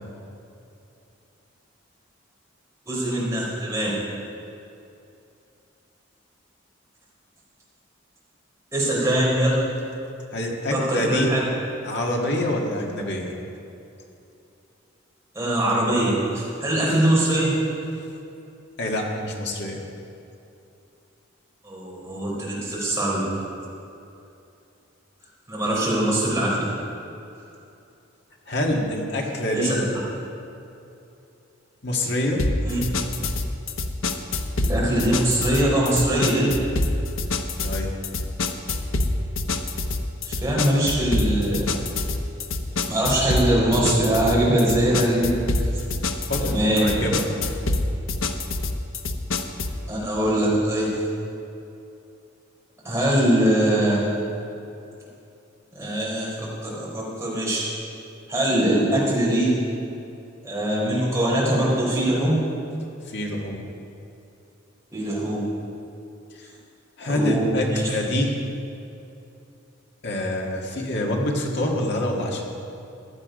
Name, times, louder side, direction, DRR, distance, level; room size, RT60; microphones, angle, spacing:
voice 1, 2.9-3.9 8.7-9.6 10.7-11.4 15.3-17.5 21.6-23.2 25.5-26.6 29.5-29.7 32.6-32.8 34.6-36.6 40.3-41.8 42.8-45.3 46.4-47.0 49.9-50.9 52.8-54.1 55.7-56.4 56.6-57.7 58.3-59.5 60.4-62.4 64.9-65.4 67.0-67.8, right 1 dB, 15° right, -6 dB, 4.1 m, -22 dB
voice 2, 10.3-11.3 11.8-13.4 18.8-19.8 28.5-29.8 31.8-32.4 37.6-37.9 46.3-47.3 63.1-63.6 66.4-66.5 67.0-68.4 70.0-72.4, left 1 dB, 55° left, 0 dB, 1.9 m, -26 dB
sound 1, 32.4-49.8, left 2 dB, 85° left, 0.9 m, -26 dB
15.5 x 11.5 x 5.3 m, 2.7 s
head